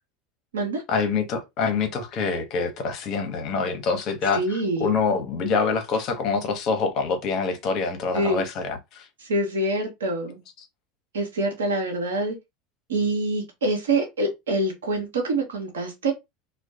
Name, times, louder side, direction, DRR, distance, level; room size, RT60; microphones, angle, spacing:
voice 1, 0.9-4.4 4.8-9.1, left 5 dB, 50° left, 0.8 m, -25 dB
voice 2, 4.3-4.9 8.1-8.4 9.2-10.4 11.1-12.4 12.9-16.1, right 2 dB, 85° right, 0.8 m, -25 dB
2.2 x 2.1 x 2.7 m
hypercardioid pair, 85°, 0 cm